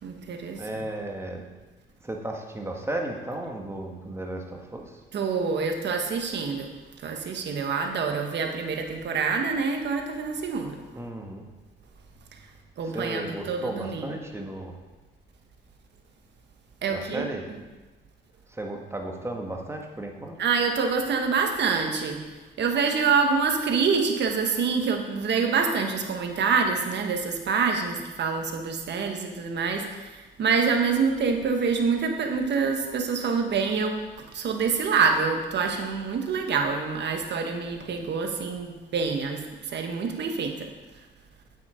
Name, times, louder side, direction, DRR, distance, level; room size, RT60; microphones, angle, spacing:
voice 1, 0.0-0.6 5.1-6.7 7.0-10.8 12.8-14.2 16.8-17.3 20.4-22.2 22.6-40.7, right 5 dB, 60° right, 4 dB, 1.4 m, -26 dB
voice 2, 0.6-1.4 2.0-5.0 10.9-11.5 12.8-14.7 16.9-17.5 18.5-20.4, right 1 dB, 15° right, 2 dB, 1.6 m, -34 dB
8.1 x 8.0 x 5.1 m, 1.2 s
cardioid pair, 90°, 20 cm